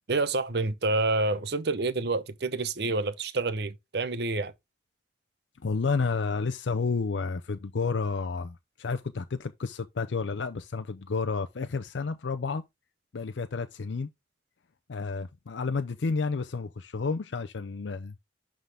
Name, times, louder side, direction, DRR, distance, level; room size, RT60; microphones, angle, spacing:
voice 1, 0.1-4.5, right 3 dB, 65° right, 0.8 m, -28 dB
voice 2, 5.6-12.6 13.1-14.1 14.9-18.2, left 4 dB, 90° left, 0.5 m, -31 dB
11.0 x 3.8 x 3.4 m
head